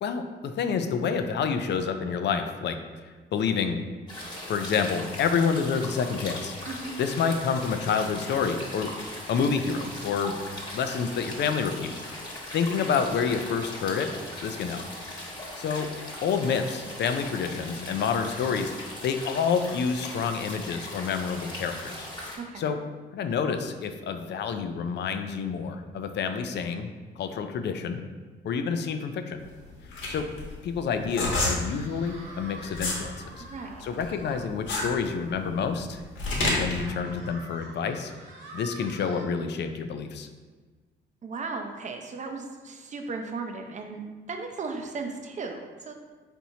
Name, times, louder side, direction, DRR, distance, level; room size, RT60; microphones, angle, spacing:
voice 1, 0.6-2.8 3.3-3.8 4.5-6.6 7.0-8.9 9.3-10.3 10.7-11.9 12.5-14.1 14.4-14.8 15.6-15.9 16.2-22.1 22.6-22.8 23.1-26.9 27.2-28.0 28.4-29.4 30.1-30.3 30.6-33.4 33.8-36.0 36.4-38.1 38.5-40.3, left 6 dB, 60° left, 7 dB, 0.5 m, -28 dB
sound 1, 4.1-22.4, left 1 dB, 20° left, 1.4 m, -39 dB
voice 2, 22.4-22.7 33.4-33.8 41.2-44.0 44.3-45.9, right 4 dB, 35° right, 4 dB, 0.6 m, -36 dB
sound 2, 29.4-33.1 33.5-36.8, left 2 dB, 85° left, 1.2 m, -29 dB
sound 3, 31.1-34.5 35.0-35.1 35.4-35.5 36.4-39.2, right 2 dB, 70° right, 1.2 m, -46 dB
4.4 x 4.2 x 2.8 m, 1.4 s
cardioid pair, 90°, 20 cm